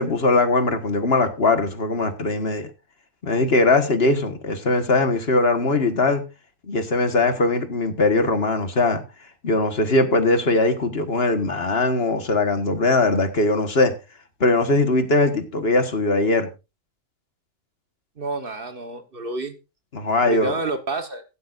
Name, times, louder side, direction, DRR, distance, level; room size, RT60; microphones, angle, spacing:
voice 1, 0.0-2.7 3.2-6.2 6.7-9.0 9.4-13.9 14.4-16.5 19.9-20.5, left 2 dB, 50° left, 1.7 m, -20 dB
voice 2, 18.2-19.6 20.2-21.2, right 2 dB, 45° right, 1.4 m, -29 dB
15.5 x 12.5 x 2.5 m
omnidirectional pair, 1.4 m